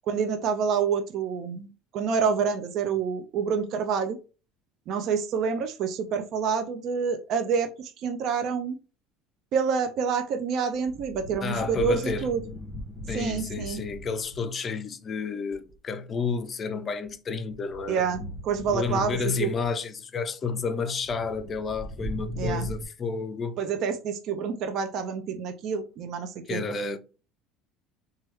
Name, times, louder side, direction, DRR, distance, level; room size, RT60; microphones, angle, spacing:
voice 1, 0.1-1.7 1.9-4.2 4.9-8.8 9.5-12.4 13.1-13.8 17.9-19.5 22.4-22.7 23.6-26.6, right 6 dB, 50° right, 0.4 m, -27 dB
sound 1, 10.7-14.5 15.5-15.8 17.1-19.7 21.0-22.9, left 1 dB, 5° left, 1.2 m, -38 dB
voice 2, 11.4-12.3 13.1-18.0 18.7-23.6 26.5-27.0, left 5 dB, 25° left, 0.4 m, -31 dB
3.1 x 2.3 x 3.0 m
cardioid pair, 150°, 0 cm